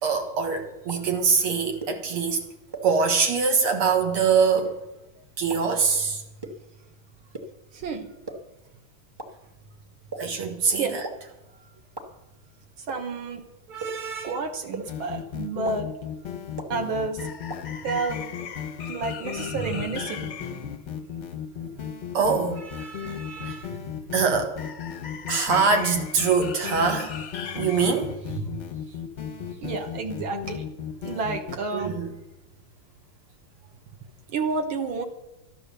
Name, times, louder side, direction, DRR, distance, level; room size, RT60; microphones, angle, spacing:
voice 1, 0.0-2.4 2.8-4.8 5.4-6.2 10.2-11.0 13.7-14.3 19.6-19.7 22.1-23.7 24.1-24.5 25.3-27.1 27.5-28.5 31.7-32.1, right 5 dB, 85° right, 4 dB, 2.6 m, -24 dB
sound 1, 0.9-1.0 1.8-1.9 2.7-2.8 3.7-3.8 4.6-4.7 5.5-5.6 6.4-6.5 7.3-7.4 8.3-8.4 9.2-9.3 10.1-10.2 11.0-11.1 12.0-12.1 12.9-13.0 13.8-13.9 14.7-14.8 15.6-15.7 16.6-16.7 17.5-17.6, right 3 dB, 20° right, 0.8 m, -34 dB
voice 2, 7.7-8.1 10.8-11.0 12.9-13.4 14.2-15.9 16.7-17.3 17.8-18.2 18.9-20.3 29.6-30.6 31.0-32.0 34.3-35.0, right 4 dB, 70° right, 5 dB, 2.0 m, -30 dB
sound 2, 14.9-31.6, left 8 dB, 55° left, 0.8 m, -35 dB
13.0 x 10.0 x 6.7 m, 0.97 s
omnidirectional pair, 2.4 m